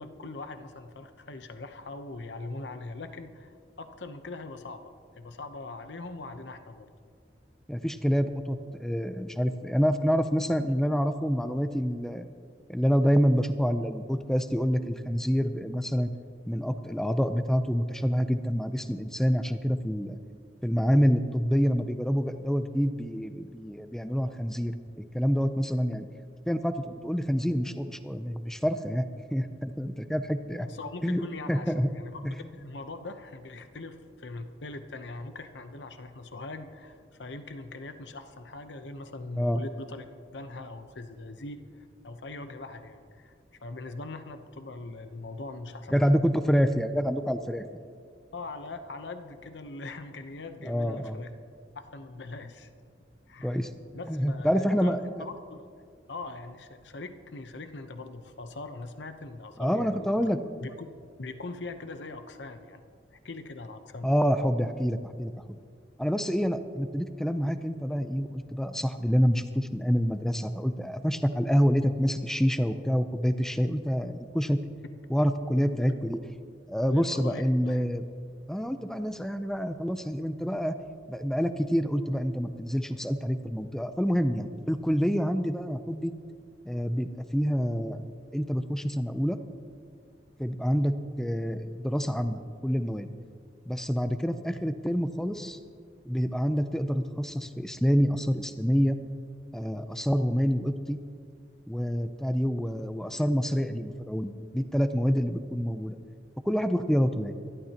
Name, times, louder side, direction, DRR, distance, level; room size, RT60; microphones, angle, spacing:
voice 1, 0.0-6.9 30.6-40.0 40.3-43.3 43.6-46.1 48.3-51.3 51.7-52.7 53.3-53.6 53.9-55.6 56.1-60.1 60.6-60.9 61.2-62.8 63.1-64.1 76.9-77.8, left 2 dB, 85° left, 8 dB, 0.9 m, -41 dB
voice 2, 7.7-12.2 12.7-16.1 16.5-20.2 20.6-24.7 25.1-26.1 26.5-29.0 29.3-30.7 31.0-31.9 32.3-32.5 39.4-39.6 45.9-47.8 50.6-51.2 53.4-53.7 54.1-55.0 59.6-60.4 64.0-65.6 66.0-74.6 75.1-76.2 76.7-78.0 78.5-80.7 81.1-86.1 86.6-88.0 88.3-89.4 90.4-93.1 93.7-95.6 96.1-99.0 99.5-101.0 101.7-106.0 106.4-107.3, equal, 5° left, 9 dB, 0.5 m, -27 dB
25.5 x 12.0 x 2.9 m, 2.2 s
head